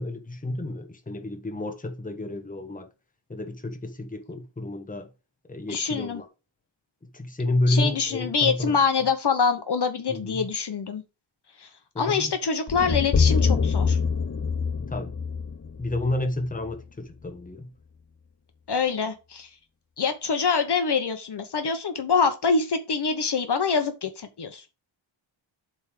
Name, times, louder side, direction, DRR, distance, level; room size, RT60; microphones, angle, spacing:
voice 1, 0.0-2.9 3.3-5.1 5.5-6.3 7.1-8.8 10.1-10.5 11.9-12.3 14.8-15.1 15.8-17.7, left 1 dB, 15° left, 1.3 m, -30 dB
voice 2, 5.7-6.2 7.7-11.0 11.6-11.7 12.0-14.0 18.7-19.5 20.0-24.6, left 5 dB, 55° left, 1.1 m, -25 dB
sound 1, 12.7-16.8, left 5 dB, 30° left, 0.6 m, -25 dB
8.1 x 3.6 x 6.6 m
wide cardioid pair, 160°, 47 cm